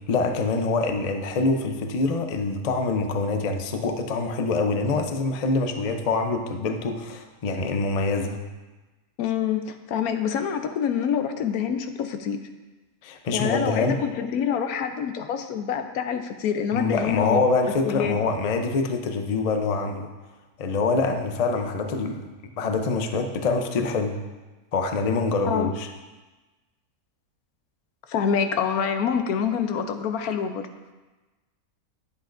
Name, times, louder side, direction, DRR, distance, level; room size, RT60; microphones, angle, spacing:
voice 1, 0.1-8.4 13.0-14.0 16.7-20.1 20.6-22.3 22.6-24.2 24.7-25.9, left 3 dB, 50° left, 5 dB, 0.4 m, -25 dB
voice 2, 9.2-12.4 13.3-17.4 17.7-18.2 25.5-25.7 28.1-30.7, left 7 dB, 90° left, 8 dB, 1.1 m, -26 dB
9.9 x 8.3 x 2.5 m, 1.2 s
omnidirectional pair, 1.5 m